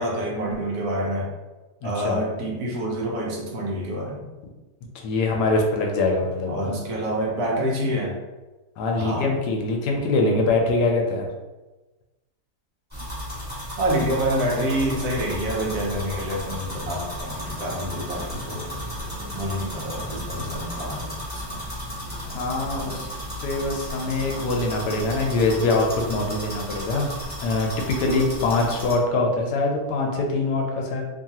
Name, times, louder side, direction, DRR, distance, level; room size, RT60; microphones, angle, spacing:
voice 1, 0.0-1.3 1.8-4.2 6.5-8.1 9.0-9.3 13.8-18.8 19.3-21.2 21.5-21.6, equal, 70° right, -2 dB, 1.1 m, -27 dB
voice 2, 1.8-2.2 4.9-6.8 8.8-11.3 22.2-23.1 23.4-31.0, left 2 dB, 85° left, 1 dB, 1.2 m, -24 dB
sound 1, 12.9-28.9, equal, 5° right, 0.9 m, -34 dB
sound 2, 17.2-26.6, left 1 dB, 45° right, 1.1 m, -42 dB
3.0 x 2.3 x 2.7 m, 1.1 s
omnidirectional pair, 1.8 m